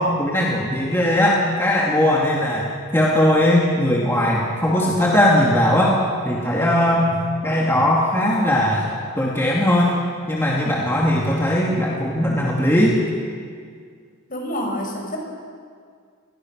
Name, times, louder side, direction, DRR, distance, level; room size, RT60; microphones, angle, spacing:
voice 1, 0.0-2.7 2.9-6.0 6.3-8.9 9.2-10.0 10.3-13.0, left 1 dB, 10° left, -4 dB, 2.5 m, -19 dB
voice 2, 14.3-15.2, left 1 dB, 45° left, 2 dB, 5.2 m, -27 dB
29.5 x 20.5 x 6.4 m, 2.1 s
head